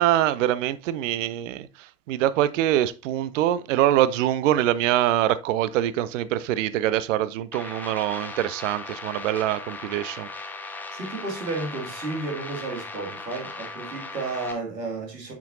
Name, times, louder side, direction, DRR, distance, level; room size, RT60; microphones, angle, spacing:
voice 1, 0.0-1.7 2.1-10.3, right 13 dB, 50° right, 0.6 m, -24 dB
sound 1, 7.5-14.5, left 3 dB, 5° left, 0.4 m, -38 dB
voice 2, 10.9-15.3, right 3 dB, 75° right, 2.5 m, -32 dB
8.4 x 6.0 x 2.7 m
figure-of-eight pair, 95°, 50 cm